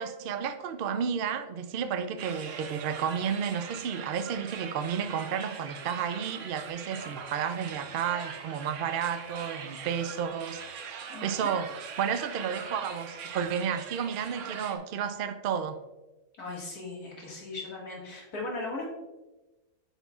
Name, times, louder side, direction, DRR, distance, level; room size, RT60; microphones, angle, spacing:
voice 1, 0.0-15.8, right 7 dB, 90° right, 9 dB, 0.4 m, -32 dB
sound 1, 2.2-14.8, right 6 dB, 65° right, 1.0 m, -42 dB
voice 2, 11.1-11.5 16.4-18.9, left 2 dB, 90° left, -3 dB, 2.4 m, -38 dB
9.3 x 5.5 x 2.4 m, 1.1 s
omnidirectional pair, 1.6 m